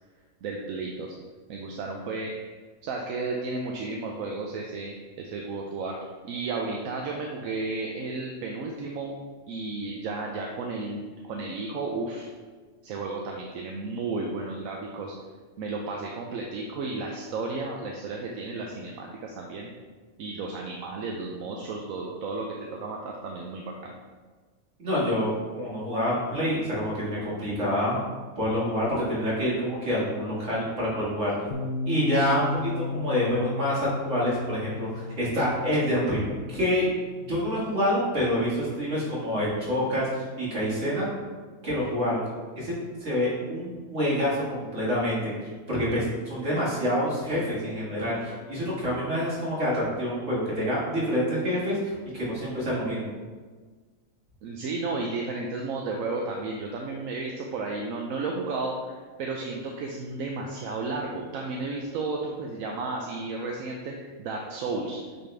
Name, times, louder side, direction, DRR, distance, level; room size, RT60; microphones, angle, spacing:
voice 1, 0.4-1.1 1.5-2.3 2.8-6.0 6.2-9.2 9.5-12.3 12.8-15.1 15.6-19.7 20.2-23.9 54.4-65.3, right 3 dB, 80° right, 0 dB, 1.1 m, -33 dB
voice 2, 24.8-28.0 28.4-31.3 31.9-36.9 37.2-41.1 41.6-42.2 42.6-42.7 43.0-45.3 45.7-53.1, equal, 65° right, -7 dB, 2.4 m, -27 dB
Piano, 31.5-38.9, left 3 dB, 75° left, 1.0 m, -35 dB
8.5 x 4.2 x 3.3 m, 1.4 s
omnidirectional pair, 1.4 m